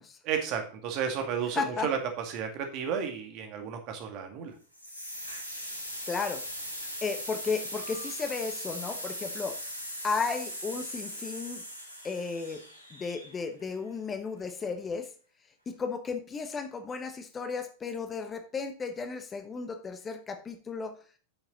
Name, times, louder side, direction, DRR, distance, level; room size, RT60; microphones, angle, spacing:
voice 1, 0.2-4.5, right 7 dB, 40° right, 5 dB, 2.1 m, -32 dB
voice 2, 1.5-1.9 5.7-5.8 6.1-6.4 7.0-9.6 10.0-11.6 12.0-12.6 12.9-15.1 15.7-21.0, left 5 dB, 20° left, 8 dB, 1.1 m, -34 dB
sound 1, 4.7-13.6, equal, 85° left, 2.6 m, -39 dB
8.9 x 7.2 x 4.0 m, 0.40 s
figure-of-eight pair, 90°, 0 cm